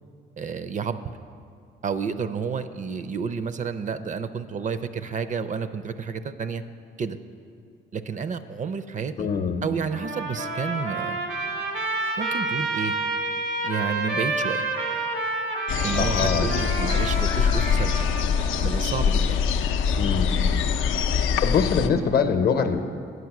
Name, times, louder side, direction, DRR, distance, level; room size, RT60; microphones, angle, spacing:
voice 1, 0.4-1.2 1.8-6.6 7.0-7.2 7.9-9.3 9.6-11.2 12.2-12.9 13.6-14.6 15.8-17.9 18.6-19.4, right 6 dB, 40° right, 11 dB, 0.4 m, -30 dB
voice 2, 9.2-9.6 15.9-16.5 20.0-20.4 21.4-22.8, left 6 dB, 50° left, 8 dB, 0.7 m, -23 dB
Trumpet, 9.9-18.7, right 2 dB, 90° right, 1.2 m, -29 dB
sound 1, 15.7-21.9, left 7 dB, 85° left, 0.5 m, -23 dB
9.4 x 6.0 x 5.9 m, 2.4 s
cardioid pair, 90°, 20 cm